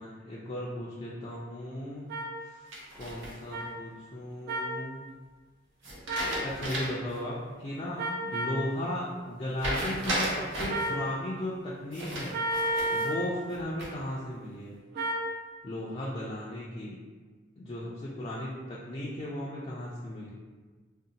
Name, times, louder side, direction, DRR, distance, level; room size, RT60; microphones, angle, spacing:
voice 1, 0.0-2.1 2.4-2.6 2.9-5.1 6.4-12.4 12.9-14.8 15.6-17.0 17.6-20.3, left 1 dB, 30° left, -7 dB, 0.4 m, -36 dB
sound 1, 2.1-2.3 3.5-3.6 4.5-4.7 6.1-6.4 8.0-8.6 10.7-11.0 12.3-13.2 14.9-15.2, right 1 dB, 55° right, 0.4 m, -31 dB
sound 2, 2.7-3.6 5.8-7.1 7.5-7.6 9.6-10.9 11.9-13.1 13.5-14.1, right 1 dB, 75° right, 0.8 m, -34 dB
2.6 x 2.1 x 3.8 m, 1.4 s
head